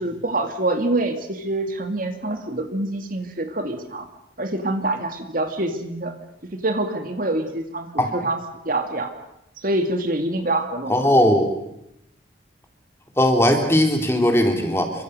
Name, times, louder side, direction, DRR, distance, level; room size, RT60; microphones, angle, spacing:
voice 1, 0.0-4.1 4.4-6.1 6.5-8.4 8.6-9.1 9.6-11.0, right 2 dB, 45° right, 6 dB, 2.4 m, -25 dB
voice 2, 10.9-11.5 13.2-14.9, left 1 dB, 15° left, 3 dB, 3.7 m, -18 dB
28.5 x 24.5 x 6.8 m, 0.82 s
head